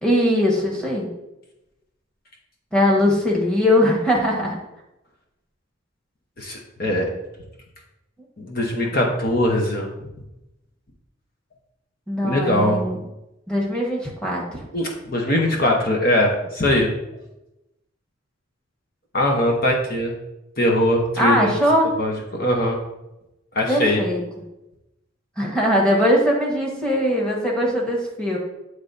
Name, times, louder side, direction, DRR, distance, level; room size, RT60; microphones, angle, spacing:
voice 1, 0.0-1.1 2.7-4.6 12.1-13.0 13.5-14.4 21.2-21.9 23.7-24.2 25.4-28.4, equal, 5° left, -2 dB, 1.2 m, -20 dB
voice 2, 6.4-7.1 8.4-9.9 12.2-12.8 14.7-16.9 19.1-20.1 20.6-21.5 22.0-22.8 23.5-24.0, left 1 dB, 45° left, 0 dB, 0.9 m, -21 dB
8.8 x 3.3 x 4.0 m, 0.93 s
head